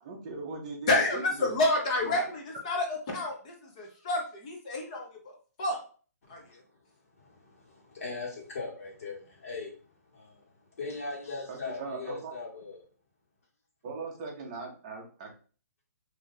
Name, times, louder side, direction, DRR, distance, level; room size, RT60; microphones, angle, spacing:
voice 1, 0.0-1.6 2.0-2.3 11.5-12.3 13.8-15.3, right 4 dB, 25° right, 0 dB, 0.6 m, -39 dB
voice 2, 0.9-5.8 6.3-6.6, left 2 dB, 25° left, 1 dB, 0.6 m, -29 dB
voice 3, 7.1-9.7 10.1-12.8, left 3 dB, 55° left, -4 dB, 1.4 m, -40 dB
2.7 x 2.4 x 3.8 m, 0.41 s
hypercardioid pair, 170°, 9 cm